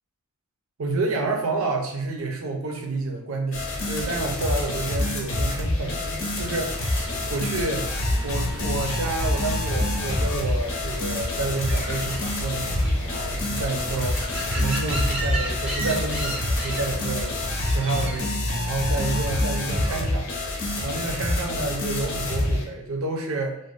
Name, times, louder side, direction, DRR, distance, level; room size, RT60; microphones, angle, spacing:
voice 1, 0.8-6.7 7.3-7.9 8.2-17.3 17.7-20.3 20.8-23.6, right 3 dB, 70° right, 2 dB, 0.5 m, -29 dB
sound 1, 3.5-22.6, left 1 dB, 70° left, 0.7 m, -27 dB
sound 2, 6.7-18.2, equal, 5° right, 0.5 m, -33 dB
2.5 x 2.2 x 3.2 m, 0.78 s
head